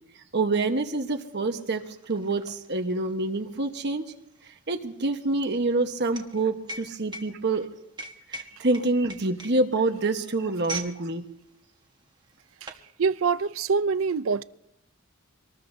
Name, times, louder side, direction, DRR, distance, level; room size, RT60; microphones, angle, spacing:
voice 1, 0.3-4.0 4.7-7.7 8.3-11.3, right 2 dB, 55° right, 1.2 m, -27 dB
sound 1, 0.7-0.8 1.0-11.0 11.3-11.6 12.2-12.9, right 2 dB, 20° right, 1.4 m, -41 dB
voice 2, 13.0-14.4, right 5 dB, 75° right, 0.5 m, -25 dB
25.5 x 19.5 x 2.7 m
head